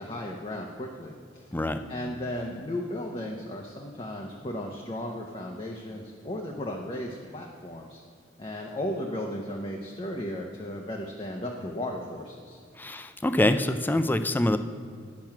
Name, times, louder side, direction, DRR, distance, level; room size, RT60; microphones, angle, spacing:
voice 1, 0.0-1.5 1.9-8.0 8.4-12.6, left 1 dB, 30° left, 0 dB, 0.7 m, -35 dB
voice 2, 12.8-14.6, left 1 dB, 10° left, 9 dB, 0.4 m, -25 dB
10.5 x 6.1 x 5.8 m, 2.3 s
head